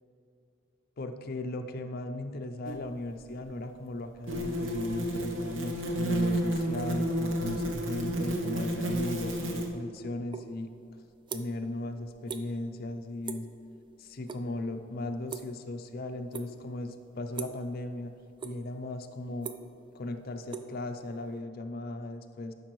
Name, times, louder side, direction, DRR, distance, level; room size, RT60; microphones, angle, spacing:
voice 1, 1.0-10.7 11.3-13.5 14.0-18.1 18.4-19.5 19.9-22.5, left 2 dB, 50° left, 7 dB, 0.5 m, -37 dB
sound 1, 2.6-2.8 4.3-9.7, right 1 dB, 85° right, 0.8 m, -31 dB
sound 2, 10.3-10.5 10.8-11.7 12.0-12.4 12.7-13.0 13.2-13.6 13.9-14.4 14.7-15.8 16.3-16.7 17.3-17.7 18.1-18.8 19.1-21.3, right 6 dB, 25° right, 0.3 m, -41 dB
11.5 x 5.2 x 3.1 m, 2.6 s
head